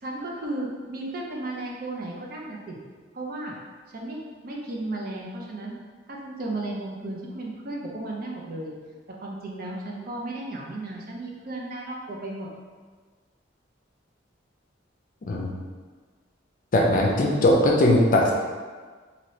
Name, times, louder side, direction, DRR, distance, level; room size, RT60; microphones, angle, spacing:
voice 1, 0.0-2.8 3.1-3.6 3.9-4.2 4.4-5.8 6.1-8.7 9.1-12.5, right 2 dB, 50° right, -2 dB, 0.5 m, -34 dB
voice 2, 16.7-18.3, left 1 dB, 45° left, -1 dB, 0.5 m, -19 dB
2.7 x 2.7 x 3.1 m, 1.5 s
head